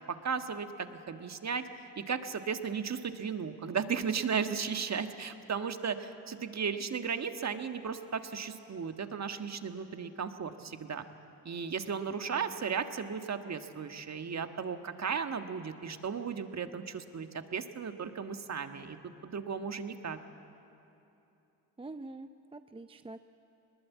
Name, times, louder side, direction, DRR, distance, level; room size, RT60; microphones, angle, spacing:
voice 1, 0.0-1.7 2.0-11.0 11.4-19.0 19.2-20.2, right 6 dB, 40° right, 8 dB, 1.6 m, -35 dB
voice 2, 21.8-23.2, right 2 dB, 15° right, 10 dB, 0.6 m, -45 dB
21.0 x 20.0 x 8.4 m, 2.8 s
supercardioid pair, 70°, 43 cm